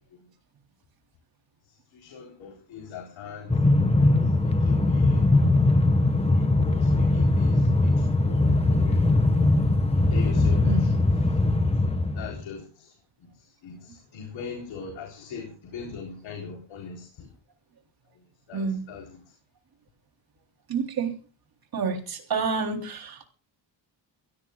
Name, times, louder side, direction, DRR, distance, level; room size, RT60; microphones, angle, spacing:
voice 1, 1.9-3.6 4.4-5.3 6.1-9.3 9.9-11.0 11.8-13.0 13.3-17.3 18.5-19.2, left 5 dB, 80° left, 4.1 m, -41 dB
Train, 3.5-12.4, left 2 dB, 15° left, 1.5 m, -21 dB
voice 2, 18.5-18.8 20.7-21.1 21.7-23.3, right 5 dB, 50° right, 3.7 m, -28 dB
23.0 x 17.0 x 2.4 m
cardioid pair, 130°, 45 cm